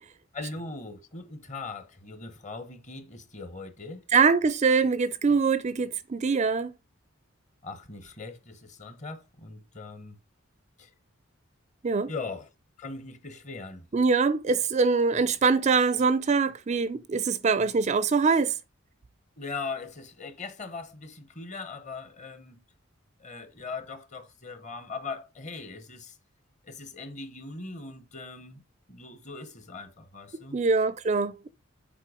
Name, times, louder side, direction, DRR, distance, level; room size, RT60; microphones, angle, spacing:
voice 1, 0.3-4.1 7.6-10.2 10.8-10.9 12.1-12.5 12.8-13.9 19.4-22.6 23.2-26.1 26.6-28.6 28.9-30.6, left 4 dB, 35° left, 1.0 m, -40 dB
voice 2, 4.1-6.7 11.8-12.1 13.9-18.5 30.5-31.5, right 4 dB, 35° right, 0.4 m, -23 dB
7.5 x 4.2 x 5.0 m
head